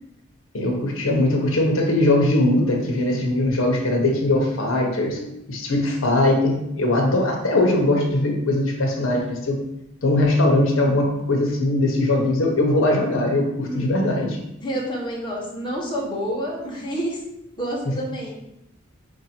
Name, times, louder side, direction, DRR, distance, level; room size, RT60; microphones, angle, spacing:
voice 1, 0.5-5.2 5.5-9.6 10.0-14.4, left 1 dB, 80° left, 1 dB, 0.8 m, -20 dB
voice 2, 13.6-14.0 14.6-17.2 17.6-18.3, equal, 25° left, -3 dB, 1.0 m, -29 dB
4.8 x 2.6 x 4.3 m, 0.84 s
head